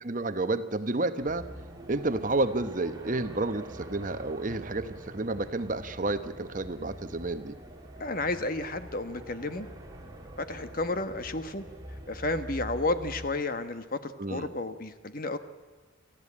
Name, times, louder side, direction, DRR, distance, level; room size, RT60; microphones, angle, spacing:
voice 1, 0.0-1.5 1.9-7.6 14.2-14.5, right 2 dB, 40° right, 11 dB, 1.0 m, -30 dB
sound 1, 1.2-13.3, equal, 20° right, 2.6 m, -45 dB
voice 2, 8.0-9.7 10.4-11.6 12.1-15.4, left 2 dB, 45° left, 10 dB, 1.3 m, -32 dB
29.5 x 14.5 x 8.6 m, 1.3 s
head